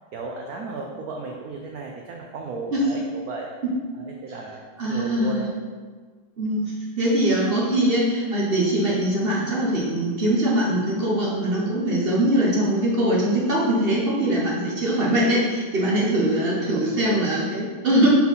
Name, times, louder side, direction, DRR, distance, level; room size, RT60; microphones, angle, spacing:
voice 1, 0.1-3.5 3.9-5.5 16.4-17.2, right 4 dB, 85° right, 0 dB, 0.8 m, -35 dB
voice 2, 4.8-5.4 6.4-6.6 7.0-18.1, right 1 dB, 55° right, -5 dB, 0.6 m, -22 dB
4.4 x 3.8 x 5.6 m, 1.5 s
omnidirectional pair, 2.3 m